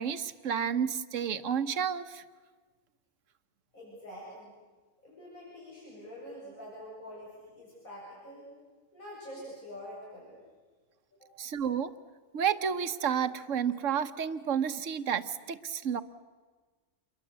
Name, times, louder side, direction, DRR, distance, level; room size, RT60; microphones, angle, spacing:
voice 1, 0.0-2.2 11.4-11.9 12.3-16.0, right 8 dB, 65° right, 12 dB, 1.3 m, -31 dB
voice 2, 3.7-4.5 5.0-8.5 8.9-10.4 11.2-11.3, equal, 85° left, -6 dB, 7.8 m, -46 dB
27.5 x 22.5 x 8.1 m, 1.4 s
omnidirectional pair, 1.4 m